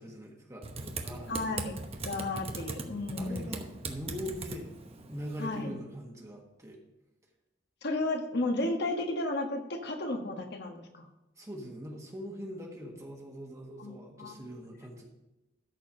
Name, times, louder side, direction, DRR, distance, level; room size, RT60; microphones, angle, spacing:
voice 1, 0.0-1.6 3.2-4.7 5.1-6.8 11.4-15.0, equal, 15° right, -1 dB, 1.4 m, -42 dB
Typing, 0.6-5.6, right 3 dB, 35° right, 0.9 m, -40 dB
voice 2, 1.3-1.7 2.0-3.5 5.4-5.7 7.8-11.1 13.8-14.4, left 2 dB, 60° left, 4 dB, 1.4 m, -33 dB
13.5 x 4.5 x 5.5 m, 0.98 s
head